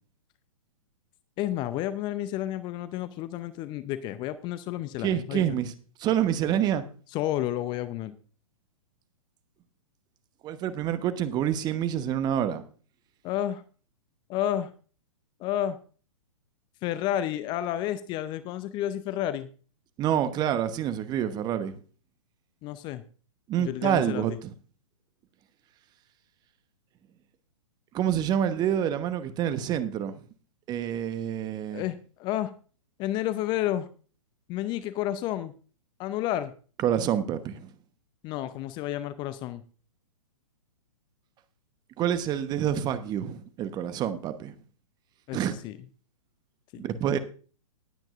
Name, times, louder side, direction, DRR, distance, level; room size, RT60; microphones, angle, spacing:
voice 1, 1.4-5.4 7.1-8.1 13.2-13.6 14.3-14.7 15.4-15.8 16.8-19.5 22.6-23.0 23.6-24.4 31.7-32.5 33.0-33.9 34.5-35.5 36.0-36.5 38.2-39.6 45.3-45.4 45.6-45.8 46.7-46.9, left 12 dB, 25° left, 0.6 m, -30 dB
voice 2, 5.0-5.7 6.0-6.8 10.4-12.6 20.0-21.7 23.5-24.3 27.9-30.1 30.7-31.8 36.8-37.7 42.0-44.5 45.3-45.6 46.7-47.2, right 10 dB, 25° right, 1.0 m, -27 dB
19.5 x 8.9 x 2.5 m
figure-of-eight pair, 120°, 18 cm